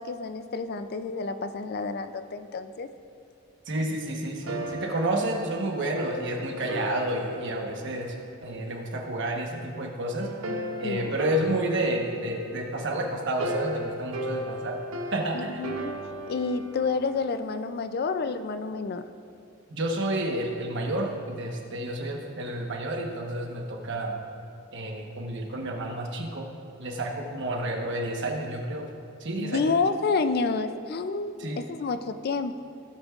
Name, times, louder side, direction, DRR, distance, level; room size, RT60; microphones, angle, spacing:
voice 1, 0.0-2.9 10.8-11.2 15.3-16.0 16.3-19.1 29.4-32.6, left 4 dB, 50° left, 10 dB, 0.4 m, -29 dB
voice 2, 3.7-8.1 8.4-10.3 10.8-14.8 15.1-15.7 19.7-24.1 24.7-26.5 26.8-28.9 29.2-29.7 31.4-31.6, right 1 dB, 60° right, 2 dB, 1.2 m, -30 dB
sound 1, 4.4-9.0 10.2-17.4, right 1 dB, 75° right, 0.8 m, -36 dB
16.0 x 8.7 x 2.5 m, 2.6 s
head